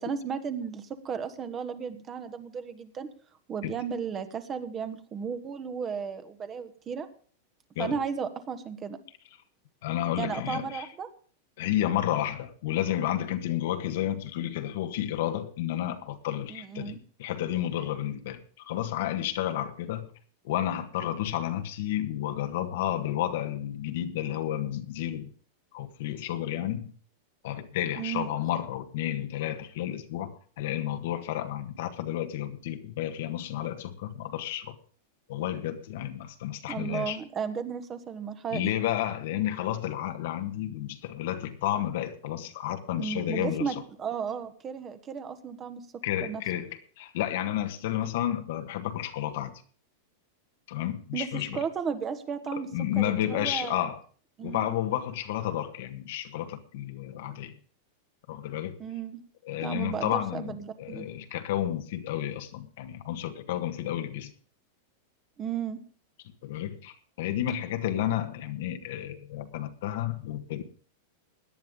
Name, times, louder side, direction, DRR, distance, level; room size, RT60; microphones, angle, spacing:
voice 1, 0.0-3.1 3.5-7.1 7.8-9.0 10.2-11.1 16.5-17.0 28.0-28.3 36.7-38.7 43.0-45.8 46.2-46.4 51.1-52.7 52.9-53.9 54.4-54.7 58.8-59.2 59.6-61.1 65.4-65.8, right 6 dB, 25° right, 10 dB, 1.4 m, -34 dB
voice 2, 9.8-10.9 11.6-20.1 20.4-25.3 25.7-26.9 27.4-34.8 35.3-37.2 38.5-43.8 46.0-49.6 50.7-51.6 52.5-54.0 54.4-57.6 58.3-58.8 59.4-64.3 66.4-70.6, left 12 dB, 70° left, 8 dB, 1.5 m, -31 dB
17.5 x 10.5 x 3.8 m, 0.43 s
supercardioid pair, 130°, 0 cm